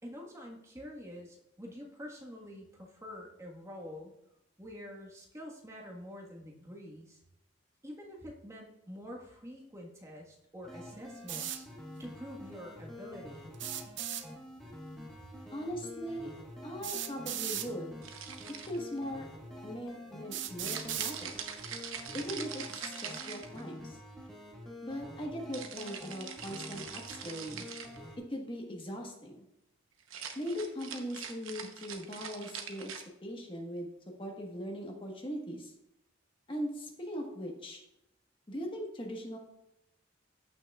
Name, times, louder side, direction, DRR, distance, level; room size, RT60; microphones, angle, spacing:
voice 1, 0.0-4.1 4.6-7.2 7.8-11.7 12.0-13.6, equal, 15° right, -1 dB, 1.5 m, -47 dB
sound 1, 10.6-28.2, left 1 dB, ahead, 1.3 m, -48 dB
sound 2, 11.3-11.6 13.5-14.3 15.7-15.8 16.8-17.7 18.7-18.8 19.5-19.6 20.3-21.2, right 11 dB, 60° right, 0.6 m, -37 dB
voice 2, 15.5-16.3 16.6-18.0 18.7-19.3 19.6-21.3 22.1-24.0 24.8-27.6 28.2-29.4 30.3-32.9 33.2-33.9 34.2-35.7 36.5-37.8 38.5-39.4, equal, 25° left, 0 dB, 1.4 m, -40 dB
sound 3, 18.0-19.0 20.6-23.8 25.5-28.0 30.0-33.0, right 7 dB, 85° right, 1.0 m, -43 dB
15.0 x 5.9 x 2.4 m, 0.86 s
head